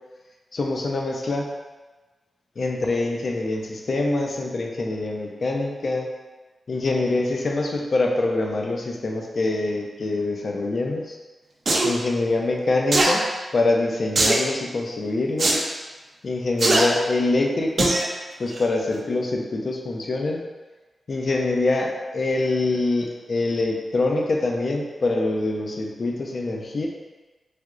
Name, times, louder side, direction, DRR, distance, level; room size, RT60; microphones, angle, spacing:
voice 1, 0.5-1.5 2.6-6.1 6.7-11.2 11.8-13.2 13.5-15.7 16.2-18.0 18.4-20.4 21.1-26.9, left 2 dB, 60° left, 1 dB, 0.5 m, -24 dB
sound 1, 11.7-11.9 12.9-13.1 14.2-14.5 15.4-15.6 16.6-16.8 17.8-18.1 18.5-18.6, right 2 dB, 60° right, 0.5 m, -19 dB
3.3 x 2.8 x 2.4 m, 1.2 s
cardioid pair, 50°, 0 cm